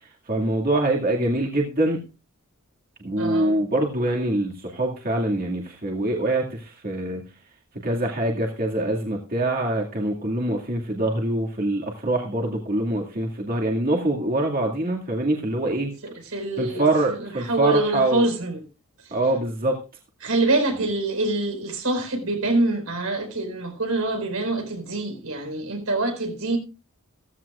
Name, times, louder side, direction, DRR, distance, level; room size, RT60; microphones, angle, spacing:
voice 1, 0.3-2.0 3.0-7.2 7.8-15.9 16.6-18.3 19.1-19.8, right 1 dB, 45° right, 2.1 m, -24 dB
voice 2, 3.2-3.6 16.0-16.8 17.1-18.6 19.0-19.1 20.2-26.6, right 2 dB, 85° right, 4.7 m, -25 dB
15.5 x 15.0 x 2.4 m
head